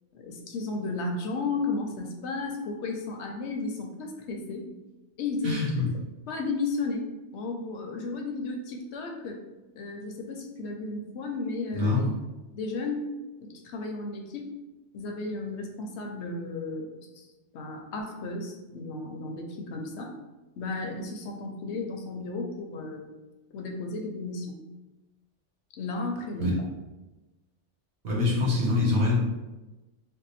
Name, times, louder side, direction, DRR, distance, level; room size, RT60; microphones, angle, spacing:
voice 1, 0.1-4.7 5.2-5.6 6.3-7.1 7.3-9.4 9.7-11.9 12.6-13.1 13.4-14.5 14.9-17.3 17.5-20.1 20.6-23.1 23.5-24.6 25.8-26.5, left 3 dB, 75° left, 2 dB, 0.9 m, -34 dB
voice 2, 5.4-5.9 11.7-12.1 26.4-26.5 28.0-29.1, left 3 dB, 75° right, -4 dB, 1.3 m, -24 dB
2.7 x 2.1 x 4.0 m, 1.1 s
omnidirectional pair, 1.2 m